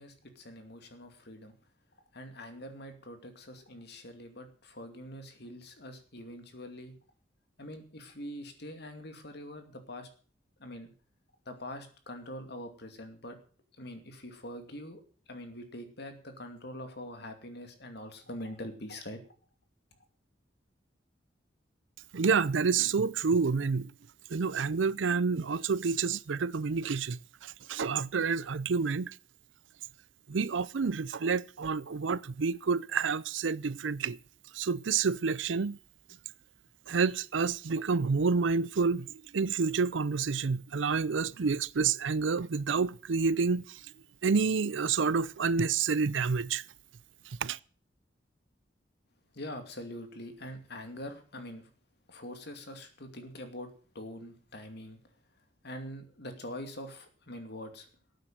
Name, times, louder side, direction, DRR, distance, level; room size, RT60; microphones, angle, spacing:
voice 1, 0.0-1.5 2.1-7.0 7.6-10.1 10.6-10.9 11.5-13.4 13.8-15.0 15.3-19.2 49.3-51.7 52.1-55.0 55.6-57.9, left 1 dB, 60° left, 2.5 m, -44 dB
voice 2, 22.1-23.9 24.3-29.1 30.3-34.2 34.5-35.8 36.9-43.8 44.2-46.6 47.4-47.6, right 5 dB, 90° right, 0.5 m, -29 dB
12.5 x 9.1 x 7.5 m
head